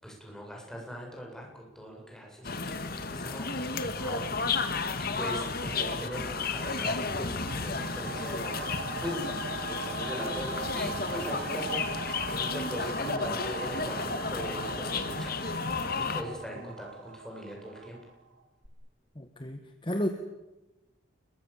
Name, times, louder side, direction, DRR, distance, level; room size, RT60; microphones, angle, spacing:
voice 1, 0.0-2.8 3.1-3.6 4.0-8.7 8.9-9.3 9.7-18.0, equal, 5° left, -1 dB, 7.9 m, -41 dB
sound 1, 2.4-16.2, left 4 dB, 50° left, 2.0 m, -32 dB
sound 2, 7.0-18.3 18.6-18.7, right 4 dB, 75° right, 3.3 m, -40 dB
voice 2, 19.2-20.1, equal, 25° left, 7 dB, 1.6 m, -32 dB
29.5 x 22.5 x 7.4 m, 1.0 s
head